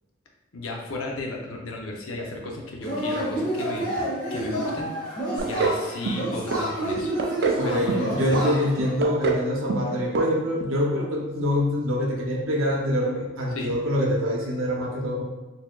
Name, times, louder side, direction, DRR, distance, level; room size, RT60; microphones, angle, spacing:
voice 1, 0.5-4.0 4.3-4.9 5.4-7.1 7.6-8.6 13.5-13.7, left 2 dB, 80° left, 0 dB, 0.7 m, -34 dB
Yell / Cheering, 2.8-8.9, right 1 dB, 5° left, 1.4 m, -29 dB
sound 1, 5.4-5.8 6.1-6.6 7.0-7.6 7.9-8.4 8.8-9.4 9.7-9.9 10.1-10.3 10.6-10.7, right 5 dB, 50° right, 0.4 m, -25 dB
voice 2, 7.6-15.2, equal, 80° right, -1 dB, 0.8 m, -25 dB
4.3 x 2.7 x 2.3 m, 1.2 s
head